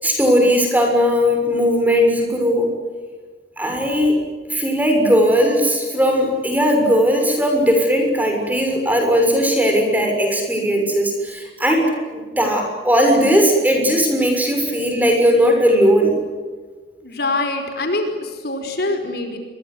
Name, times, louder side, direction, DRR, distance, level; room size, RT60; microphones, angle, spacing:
voice 1, 0.0-2.7 3.6-4.2 4.5-16.1, equal, 10° right, 3 dB, 6.6 m, -17 dB
voice 2, 17.0-19.4, left 2 dB, 60° left, 6 dB, 5.0 m, -24 dB
28.0 x 24.0 x 8.0 m, 1.5 s
head